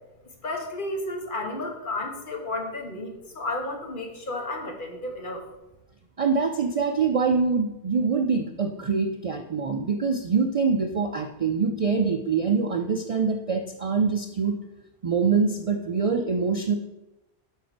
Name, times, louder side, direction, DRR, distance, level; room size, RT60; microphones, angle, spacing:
voice 1, 0.4-5.4, left 2 dB, 50° left, 2 dB, 1.3 m, -32 dB
voice 2, 6.2-14.6 15.0-16.7, right 5 dB, 50° right, 5 dB, 0.4 m, -24 dB
7.8 x 4.6 x 5.1 m, 0.97 s
omnidirectional pair, 1.1 m